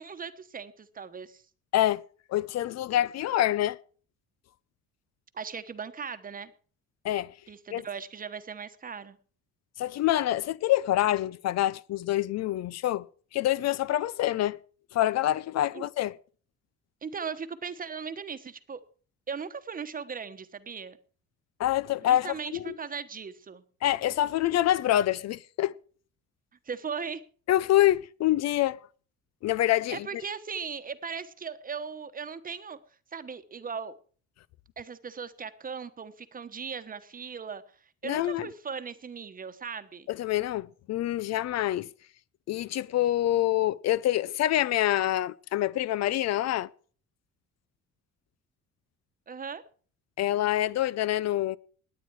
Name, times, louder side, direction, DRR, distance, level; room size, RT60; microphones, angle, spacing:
voice 1, 0.0-1.4 5.3-6.5 7.5-9.2 15.7-15.9 17.0-18.8 19.3-21.0 22.0-23.6 26.6-27.2 29.9-32.8 33.1-33.9 34.8-40.1 49.3-49.6, right 6 dB, 30° right, 1.1 m, -38 dB
voice 2, 1.7-2.0 2.3-3.8 7.0-7.3 7.7-7.8 9.8-13.1 13.3-14.6 14.9-16.2 21.6-22.3 22.5-22.7 23.8-25.7 27.5-28.8 29.4-30.1 38.0-38.5 40.1-41.9 42.5-46.7 50.2-51.6, left 13 dB, 60° left, 0.5 m, -26 dB
18.5 x 9.6 x 4.7 m
cardioid pair, 135°, 30 cm